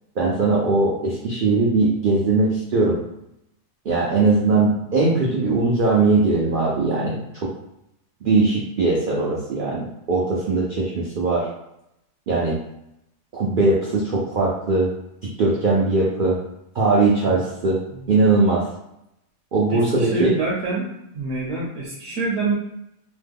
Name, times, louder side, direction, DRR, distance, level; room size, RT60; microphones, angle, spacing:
voice 1, 0.2-3.0 3.8-7.5 8.2-11.5 12.3-12.6 13.3-14.9 15.2-16.4 16.7-17.8 18.1-18.7 19.5-20.4, right 3 dB, 85° right, -4 dB, 0.4 m, -20 dB
voice 2, 19.7-20.9 21.1-22.5, right 3 dB, 70° right, -3 dB, 1.0 m, -26 dB
3.0 x 2.1 x 3.4 m, 0.82 s
omnidirectional pair, 1.6 m